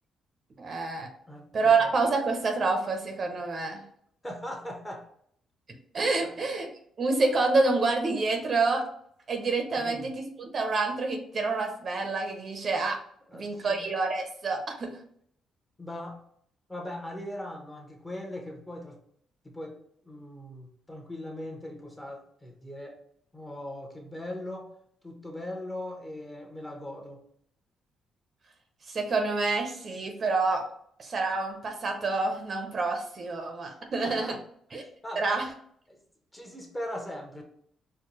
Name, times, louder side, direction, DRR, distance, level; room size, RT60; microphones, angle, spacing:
voice 1, 0.6-1.1 1.5-3.8 5.9-6.7 7.0-8.9 9.3-13.0 13.3-14.9 28.8-30.6 31.0-34.4 34.7-34.8 35.2-35.5, right 3 dB, 45° right, 4 dB, 0.6 m, -27 dB
voice 2, 1.3-1.9 4.2-5.1 6.2-6.3 9.8-10.1 13.3-13.9 15.8-16.2 16.7-19.0 19.4-19.8 20.1-23.0 23.3-24.7 25.0-27.2 33.7-34.4 35.0-35.2 35.9-36.0 36.3-37.4, left 1 dB, 15° left, 1 dB, 0.9 m, -40 dB
4.5 x 2.2 x 2.9 m, 0.67 s
cardioid pair, 90°, 0 cm